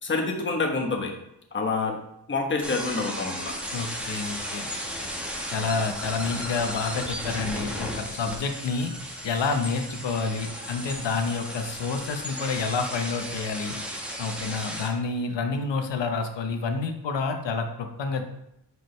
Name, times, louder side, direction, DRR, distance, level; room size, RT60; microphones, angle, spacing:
voice 1, 0.0-1.1 1.5-2.0 2.3-3.5, left 3 dB, 25° left, 2 dB, 1.1 m, -27 dB
sound 1, 2.6-14.9, equal, 5° right, 1.3 m, -35 dB
voice 2, 3.7-4.7 5.5-8.9 9.2-13.7 14.2-18.2, left 4 dB, 85° left, 5 dB, 1.1 m, -29 dB
9.1 x 5.0 x 3.2 m, 0.82 s
wide cardioid pair, 135°, 42 cm